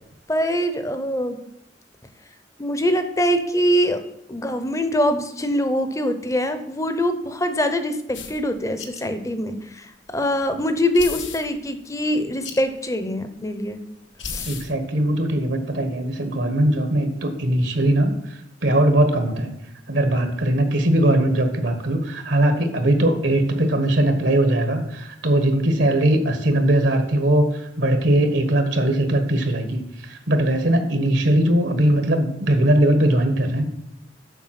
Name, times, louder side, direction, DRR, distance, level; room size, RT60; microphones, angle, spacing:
voice 1, 0.3-1.4 2.6-4.0 4.3-13.8 14.3-14.5, equal, 15° left, 9 dB, 0.7 m, -23 dB
sound 1, 8.1-8.4 8.8-9.0 9.3-9.4 10.9-11.5 12.4-12.6 14.2-14.7, left 6 dB, 85° left, 1.2 m, -33 dB
voice 2, 14.4-19.5 19.9-33.7, right 1 dB, 70° right, 7 dB, 1.2 m, -20 dB
7.3 x 6.8 x 5.8 m, 0.83 s
head